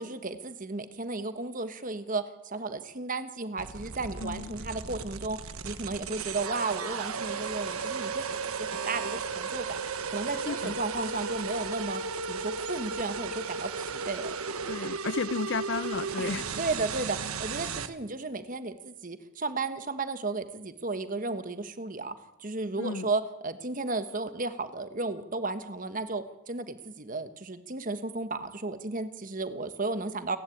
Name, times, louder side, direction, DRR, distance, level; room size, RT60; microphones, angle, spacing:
voice 1, 0.0-5.4 5.6-9.8 10.1-12.0 12.3-14.3 16.2-22.1 22.4-30.4, right 3 dB, 40° right, 10 dB, 1.3 m, -34 dB
sound 1, 3.6-17.9, right 5 dB, 85° right, 1.3 m, -35 dB
voice 2, 4.2-4.6 10.5-10.7 14.7-16.5 22.8-23.1, left 4 dB, 55° left, 18 dB, 0.6 m, -33 dB
29.5 x 11.0 x 8.6 m, 0.95 s
head